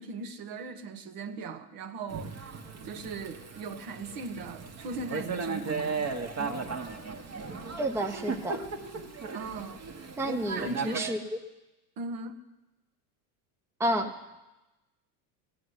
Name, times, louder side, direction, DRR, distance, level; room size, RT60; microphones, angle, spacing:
voice 1, 0.0-2.6 2.8-6.1 9.3-9.8 10.2-11.2 12.0-12.4, right 4 dB, 50° right, 7 dB, 1.4 m, -39 dB
Thunder / Rain, 2.1-11.0, right 4 dB, 35° right, 1.7 m, -36 dB
voice 2, 7.8-8.6 10.2-11.4 13.8-14.2, right 1 dB, 5° right, 5 dB, 0.8 m, -30 dB
17.5 x 7.7 x 9.7 m, 1.0 s
supercardioid pair, 110°, 45 cm